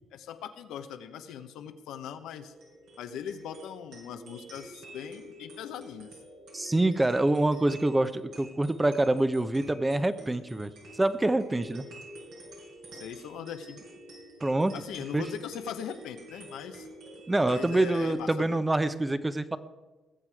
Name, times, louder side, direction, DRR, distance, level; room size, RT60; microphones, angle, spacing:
voice 1, 0.1-2.5 3.0-6.1 12.9-13.8 14.7-16.9 17.4-18.6, left 8 dB, 85° left, 8 dB, 1.0 m, -40 dB
sound 1, 2.4-18.1, equal, 80° right, 5.2 m, -48 dB
voice 2, 6.5-11.9 14.4-14.7 15.1-15.2 17.3-19.6, right 2 dB, 15° right, 12 dB, 0.7 m, -26 dB
20.0 x 7.5 x 4.8 m, 1.2 s
cardioid pair, 90°, 0 cm